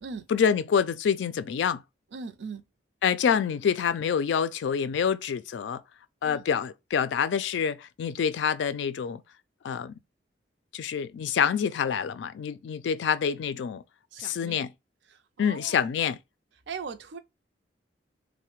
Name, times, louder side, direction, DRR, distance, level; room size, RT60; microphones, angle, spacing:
voice 1, 0.3-1.8 3.0-5.8 6.2-9.2 9.6-9.9 10.7-13.8 14.2-14.7 15.4-16.2, left 7 dB, 75° left, 0.3 m, -27 dB
voice 2, 2.1-2.6 6.2-6.4 14.1-14.6 15.4-15.9 16.7-17.2, right 5 dB, 70° right, 0.5 m, -39 dB
3.2 x 2.1 x 2.9 m
head